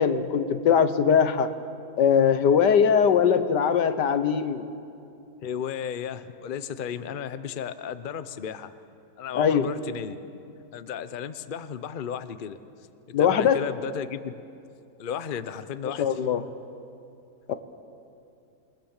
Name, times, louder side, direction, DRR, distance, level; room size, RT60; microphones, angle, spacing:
voice 1, 0.0-1.5 2.0-4.7 9.4-9.7 13.1-13.6 16.0-16.5 17.5-17.6, left 7 dB, 85° left, 10 dB, 1.7 m, -21 dB
voice 2, 5.4-8.7 9.2-10.2 10.7-12.6 13.2-14.3 15.0-16.0, left 8 dB, 45° left, 12 dB, 0.7 m, -34 dB
27.5 x 19.0 x 7.3 m, 2.6 s
omnidirectional pair, 1.8 m